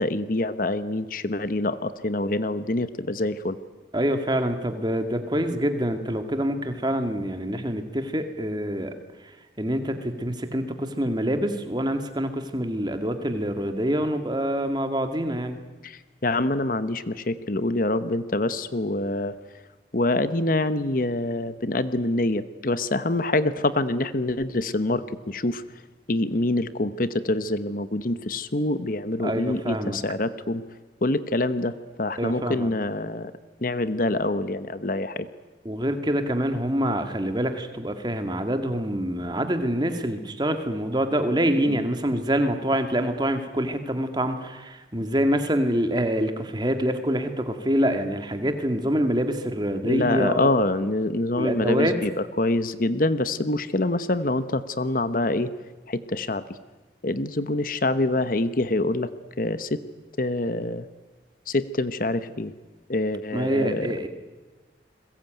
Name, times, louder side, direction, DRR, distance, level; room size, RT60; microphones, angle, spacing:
voice 1, 0.0-3.6 15.8-19.3 19.9-25.6 26.1-30.6 31.0-33.3 33.6-35.3 41.7-41.8 49.8-52.1 52.4-55.5 55.9-56.4 57.0-59.1 59.4-59.8 60.2-60.9 61.5-62.5 62.9-64.0, left 2 dB, 50° left, 13 dB, 1.0 m, -25 dB
voice 2, 3.9-8.9 9.6-15.6 29.2-30.0 32.2-32.7 35.6-50.6 51.3-52.0 63.3-64.1, equal, 25° right, 7 dB, 2.1 m, -26 dB
29.5 x 21.5 x 9.2 m, 1.3 s
head